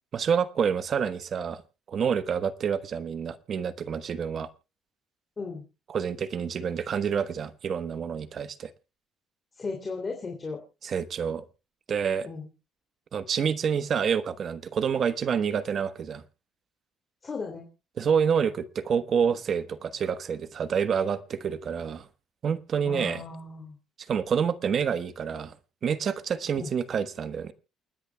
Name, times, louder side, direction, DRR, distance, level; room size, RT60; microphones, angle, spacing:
voice 1, 0.1-1.6 1.9-4.5 5.9-8.7 10.8-11.4 11.9-12.3 13.1-16.2 18.0-22.1 22.4-23.2 24.1-25.5 25.8-27.5, right 7 dB, 45° right, 1.2 m, -28 dB
voice 2, 9.6-10.6 12.3-12.5 17.2-17.7 22.8-23.8 26.5-26.7, left 4 dB, 25° left, 3.0 m, -35 dB
29.0 x 10.0 x 2.3 m
cardioid pair, 120°, 0 cm